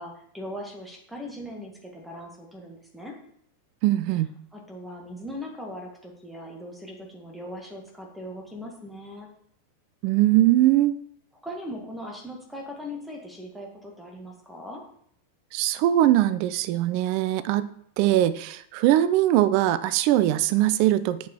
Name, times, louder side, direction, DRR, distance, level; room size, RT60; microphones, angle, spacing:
voice 1, 0.0-3.1 4.5-9.3 11.4-14.8, equal, 5° right, 0 dB, 1.8 m, -39 dB
voice 2, 3.8-4.3 10.0-11.0 15.5-17.7 18.0-21.3, right 14 dB, 45° right, 16 dB, 0.4 m, -21 dB
8.1 x 4.8 x 4.3 m, 0.66 s
figure-of-eight pair, 90°, 0 cm